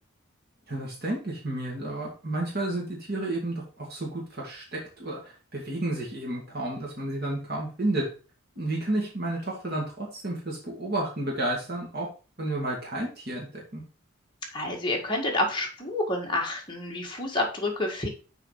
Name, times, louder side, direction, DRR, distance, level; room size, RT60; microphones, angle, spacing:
voice 1, 0.7-8.0 8.6-12.1 12.4-13.8, right 1 dB, 45° right, -3 dB, 2.1 m, -31 dB
voice 2, 14.5-18.1, left 2 dB, 20° left, -1 dB, 1.7 m, -29 dB
6.5 x 4.4 x 5.4 m, 0.35 s
head